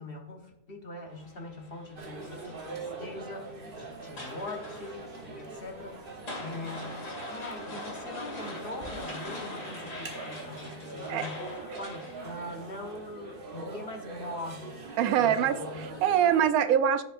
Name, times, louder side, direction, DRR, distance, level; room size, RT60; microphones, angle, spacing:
voice 1, 0.0-6.1 6.4-7.0 7.3-11.4 11.8-14.8 15.2-16.0, left 2 dB, 45° left, 3 dB, 1.3 m, -42 dB
sound 1, 1.1-13.0, left 2 dB, 60° left, 2.4 m, -44 dB
sound 2, 2.0-16.5, right 3 dB, 40° right, 1.3 m, -42 dB
voice 2, 15.0-15.6 16.0-17.0, right 9 dB, 90° right, 12 dB, 1.1 m, -23 dB
15.0 x 5.3 x 2.6 m, 0.88 s
omnidirectional pair, 1.5 m